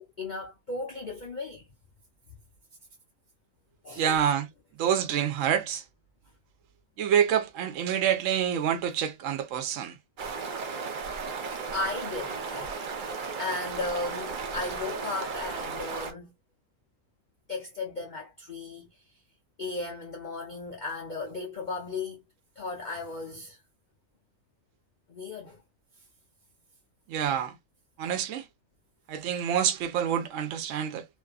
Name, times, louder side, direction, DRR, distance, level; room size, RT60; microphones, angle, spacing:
voice 1, 0.0-1.7 3.8-4.2 11.7-16.3 17.5-18.9 19.6-22.2 22.6-23.6 25.1-25.6, left 3 dB, 75° left, 0.4 m, -36 dB
voice 2, 4.0-4.5 4.8-5.8 7.0-10.0 27.1-27.6 28.0-28.5 29.1-31.1, right 9 dB, 65° right, 0.9 m, -27 dB
sound 1, 10.2-16.1, right 5 dB, 90° right, 0.4 m, -35 dB
2.7 x 2.4 x 2.2 m
omnidirectional pair, 1.6 m